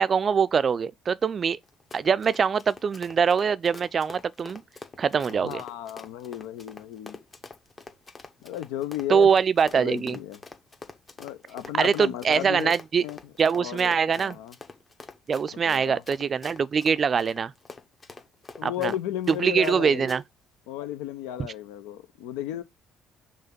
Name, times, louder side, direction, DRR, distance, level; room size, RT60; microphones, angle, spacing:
voice 1, 0.0-1.6 1.9-4.6 5.0-5.6 9.1-10.2 11.7-13.0 13.4-14.4 15.3-17.5 18.6-18.9 19.3-20.2, right 6 dB, 45° right, 0.4 m, -23 dB
Run, 1.6-19.8 20.1-20.2, left 3 dB, 30° left, 1.2 m, -45 dB
voice 2, 5.3-7.2 8.4-9.3 9.7-10.4 11.2-12.7 13.0-14.5 15.5-16.0 18.6-20.1 20.7-22.6, left 12 dB, 75° left, 0.6 m, -34 dB
5.6 x 3.4 x 5.2 m
hypercardioid pair, 60°, 0 cm